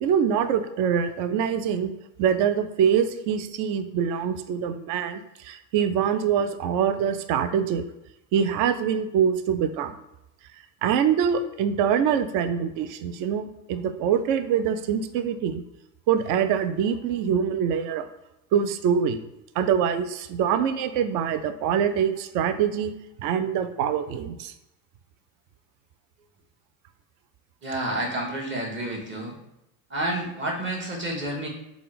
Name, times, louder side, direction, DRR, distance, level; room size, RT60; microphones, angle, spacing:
voice 1, 0.0-1.9 2.2-7.8 8.3-9.9 10.8-15.6 16.1-18.1 18.5-19.2 19.6-22.9 23.2-24.5, right 8 dB, 45° right, 10 dB, 0.4 m, -24 dB
voice 2, 27.6-29.3 29.9-31.5, right 1 dB, 25° right, -2 dB, 1.4 m, -29 dB
3.6 x 2.2 x 4.1 m, 0.86 s
hypercardioid pair, 75°, 47 cm